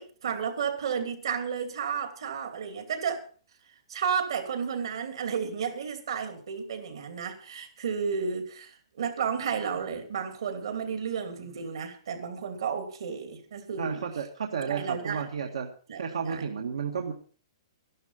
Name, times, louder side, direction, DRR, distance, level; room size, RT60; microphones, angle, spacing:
voice 1, 0.0-3.2 3.9-14.0 14.7-15.2 15.9-16.0 16.3-16.4, right 6 dB, 60° right, 7 dB, 2.9 m, -32 dB
voice 2, 13.8-15.7 15.9-17.1, right 6 dB, 80° right, 4 dB, 1.8 m, -32 dB
13.0 x 12.0 x 5.7 m, 0.41 s
hypercardioid pair, 180°, 3 cm